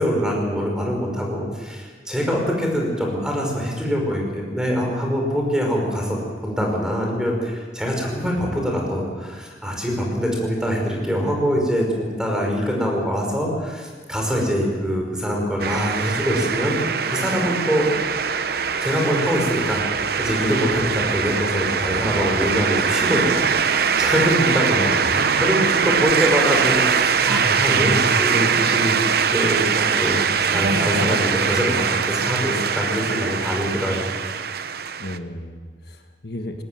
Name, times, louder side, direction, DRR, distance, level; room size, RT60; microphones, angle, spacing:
voice 1, 0.0-17.9 18.8-24.8 25.0-34.2, equal, 5° right, 0 dB, 5.4 m, -24 dB
voice 2, 8.2-8.5 24.7-25.9 35.0-36.6, left 1 dB, 65° left, 4 dB, 1.6 m, -33 dB
sound 1, 15.6-35.2, right 6 dB, 60° right, 0.8 m, -22 dB
20.5 x 17.5 x 7.7 m, 1.5 s
head